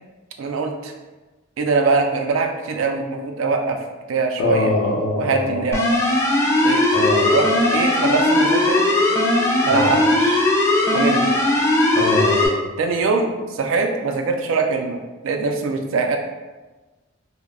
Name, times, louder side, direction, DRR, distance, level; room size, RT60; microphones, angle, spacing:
voice 1, 0.4-0.9 1.6-3.8 4.1-4.7 5.2-5.8 6.6-6.8 7.3-8.8 9.6-10.5 10.9-11.2 12.8-16.2, right 4 dB, 75° right, 4 dB, 0.3 m, -22 dB
voice 2, 4.4-5.6 6.9-7.3 9.7-9.9 11.9-12.6, left 2 dB, 70° left, -2 dB, 0.6 m, -22 dB
sound 1, 5.7-12.5, left 1 dB, 15° left, 0.3 m, -18 dB
2.2 x 2.0 x 3.4 m, 1.2 s
head